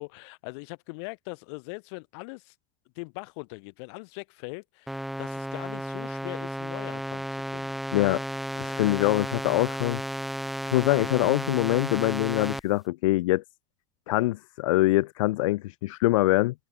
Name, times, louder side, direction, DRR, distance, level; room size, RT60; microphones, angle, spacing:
voice 1, 0.0-2.5 2.9-7.8, left 31 dB, 60° left, 6.9 m, -41 dB
sound 1, 4.9-12.6, equal, ahead, 6.6 m, -33 dB
voice 2, 7.9-8.2 8.6-10.0 10.6-13.4 14.1-16.5, left 18 dB, 90° left, 5.1 m, -24 dB
supercardioid pair, 165°, 16 cm